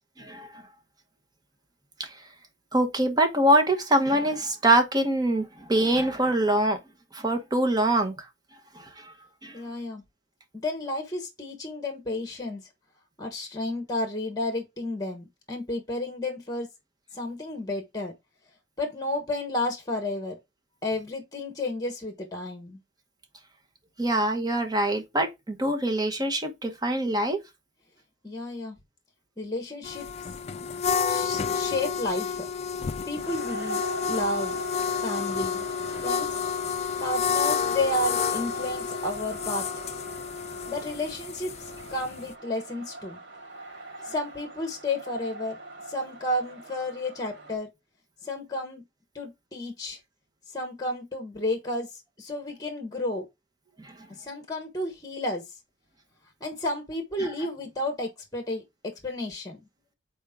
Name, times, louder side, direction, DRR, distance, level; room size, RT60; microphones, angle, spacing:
voice 1, 0.2-0.6 2.0-2.2 2.7-6.8 7.1-8.3 8.7-9.1 9.4-9.5 24.0-27.4 53.8-53.9 57.2-57.3, right 1 dB, 20° right, 1.1 m, -24 dB
voice 2, 9.5-10.0 10.5-12.7 13.2-16.7 17.1-18.1 18.8-20.3 20.8-22.8 28.2-28.8 29.4-30.0 31.1-32.5 33.1-33.8 34.1-34.5 35.0-35.7 35.9-36.4 37.0-39.8 40.7-43.2 44.0-45.6 45.9-47.7 48.2-48.8 49.1-50.0 50.5-53.2 54.1-55.4 56.4-59.6, left 1 dB, 20° left, 1.3 m, -32 dB
sound 1, 29.8-42.3, left 6 dB, 35° left, 0.4 m, -30 dB
sound 2, 33.2-47.6, right 2 dB, 85° right, 2.6 m, -42 dB
7.2 x 4.4 x 3.7 m
head